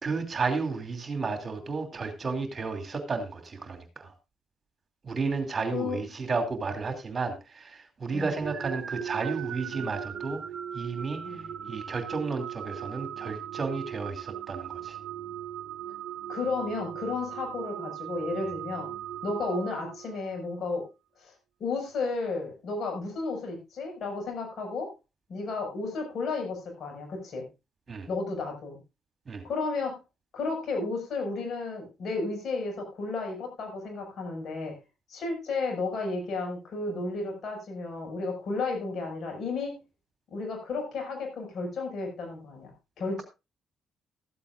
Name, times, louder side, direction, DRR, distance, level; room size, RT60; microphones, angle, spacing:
voice 1, 0.0-4.1 5.0-10.4 10.7-15.0 27.9-28.1 29.3-29.4, right 4 dB, 35° right, 5 dB, 2.8 m, -32 dB
sound 1, 8.4-20.4, right 10 dB, 55° right, 0.7 m, -38 dB
voice 2, 16.3-18.9 19.2-20.8 21.2-21.3 21.6-24.9 25.3-27.5 28.1-28.8 29.4-30.0 30.3-34.7 35.1-39.8 40.3-42.7 43.0-43.2, left 3 dB, 50° left, 2 dB, 6.0 m, -33 dB
14.5 x 14.0 x 2.6 m, 0.26 s
figure-of-eight pair, 45°, 0 cm